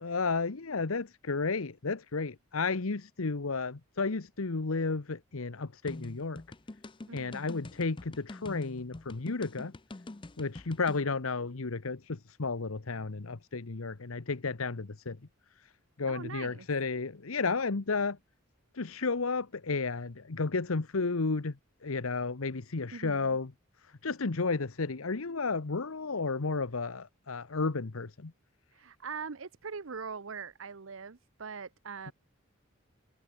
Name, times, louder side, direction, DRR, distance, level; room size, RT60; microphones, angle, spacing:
voice 1, 0.0-6.4 7.1-9.7 10.4-15.2 15.6-15.7 16.0-18.2 18.7-21.6 21.8-23.5 23.9-28.3, left 4 dB, 85° left, 1.0 m, -32 dB
sound 1, 5.9-11.0, left 2 dB, 25° left, 0.5 m, -45 dB
voice 2, 7.1-7.5 16.1-16.7 22.9-23.4 28.7-32.1, right 5 dB, 70° right, 0.8 m, -42 dB
head